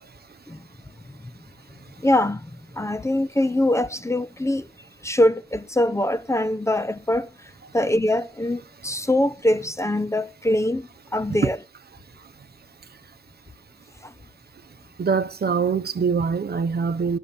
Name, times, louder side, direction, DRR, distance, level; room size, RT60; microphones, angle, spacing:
voice 1, 2.0-2.4 2.8-4.7 5.0-7.3 7.7-10.8 11.1-11.6, left 1 dB, 15° left, 0.6 m, -22 dB
voice 2, 15.0-17.2, right 5 dB, 60° right, 0.9 m, -23 dB
12.5 x 6.7 x 6.9 m
wide cardioid pair, 105°, 18 cm